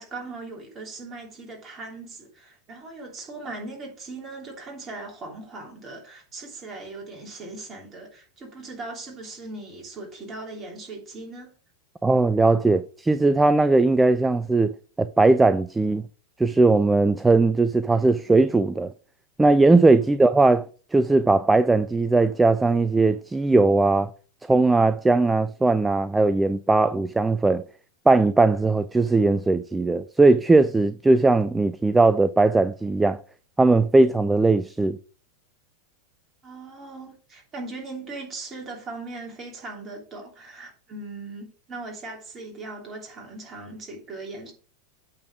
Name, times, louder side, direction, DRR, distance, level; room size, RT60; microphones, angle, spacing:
voice 1, 0.0-11.5 20.0-20.2 36.4-44.5, right 3 dB, 25° right, 3.1 m, -39 dB
voice 2, 12.0-14.7 15.0-16.1 16.4-18.9 19.4-20.6 20.9-24.1 24.5-27.6 28.1-33.2 33.6-35.0, right 3 dB, 10° right, 0.3 m, -19 dB
8.5 x 4.1 x 4.9 m
figure-of-eight pair, 90°, 0 cm